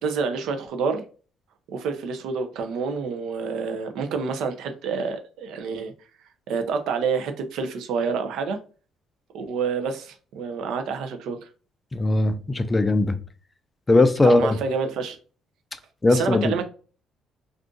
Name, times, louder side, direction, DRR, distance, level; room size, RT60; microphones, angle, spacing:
voice 1, 0.0-1.0 1.7-5.9 6.5-8.6 9.3-11.4 14.2-15.2 16.1-16.7, right 5 dB, 75° right, 0.5 m, -28 dB
voice 2, 11.9-13.2 13.9-14.6 16.0-16.5, left 2 dB, 15° left, 0.3 m, -19 dB
2.5 x 2.4 x 3.7 m
cardioid pair, 125°, 0 cm